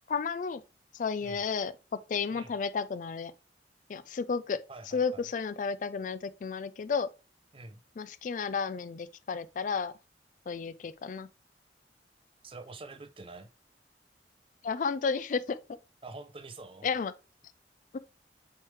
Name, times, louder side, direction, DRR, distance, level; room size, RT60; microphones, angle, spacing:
voice 1, 0.1-0.6 0.9-3.3 3.9-4.6 4.9-7.1 8.0-9.9 10.5-11.3 14.6-15.6 16.8-17.1 17.9-18.0, left 5 dB, 45° left, 0.3 m, -32 dB
voice 2, 4.7-5.3 7.5-7.8 12.4-13.5 16.0-16.9, right 3 dB, 30° right, 0.6 m, -46 dB
8.5 x 3.3 x 3.3 m
head